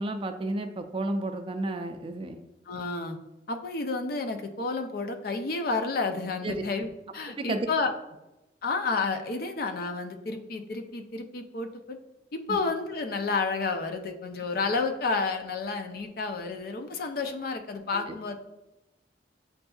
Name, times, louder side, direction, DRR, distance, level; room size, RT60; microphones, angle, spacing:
voice 1, 0.0-2.4 6.4-6.6 7.4-7.6 12.5-12.6 17.9-18.1, right 2 dB, 30° right, 7 dB, 0.3 m, -32 dB
voice 2, 2.7-3.2 3.5-7.9 8.6-12.0 12.3-18.4, left 4 dB, 55° left, 6 dB, 0.4 m, -31 dB
7.7 x 2.6 x 2.3 m, 0.98 s
head